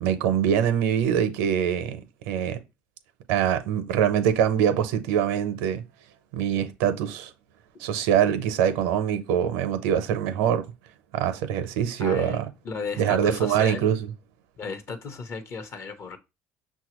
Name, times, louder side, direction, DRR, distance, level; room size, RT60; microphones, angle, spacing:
voice 1, 0.0-2.0 2.3-2.6 3.3-5.8 6.3-7.3 7.8-10.7 11.1-12.5 13.0-14.0, right 9 dB, 85° right, 0.6 m, -24 dB
voice 2, 12.0-13.9 14.6-16.2, left 4 dB, 50° left, 0.8 m, -35 dB
5.8 x 2.2 x 3.0 m
supercardioid pair, 75°, 5 cm